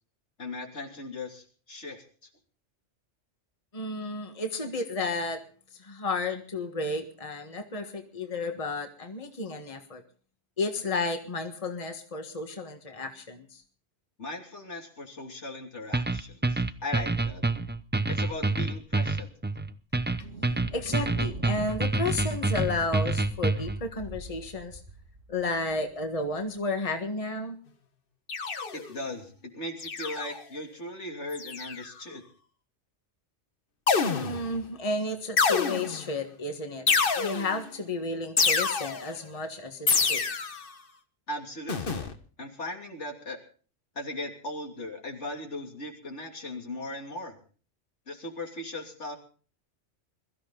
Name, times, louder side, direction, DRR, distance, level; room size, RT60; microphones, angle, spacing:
voice 1, 0.4-2.0 14.2-17.4 18.1-19.3 28.7-32.2 41.3-42.1 42.4-43.4 43.9-47.4 48.1-49.2, left 1 dB, 70° left, 3 dB, 3.3 m, -38 dB
voice 2, 3.7-5.4 5.7-10.0 10.6-13.6 20.7-24.8 25.3-27.6 34.1-36.9 37.1-40.2, left 2 dB, 30° left, 5 dB, 1.6 m, -32 dB
sound 1, 15.9-23.8, right 2 dB, 15° right, 0.4 m, -27 dB
Thunder, 20.0-26.7, right 2 dB, 80° right, 2.9 m, -44 dB
sound 2, 28.3-29.0 29.8-30.4 31.3-31.9 33.9-34.6 35.4-36.1 36.9-37.7 38.4-39.2 39.9-40.7 41.7-42.1, left 5 dB, 50° left, 1.3 m, -27 dB
22.0 x 14.0 x 3.9 m, 0.40 s
omnidirectional pair, 1.2 m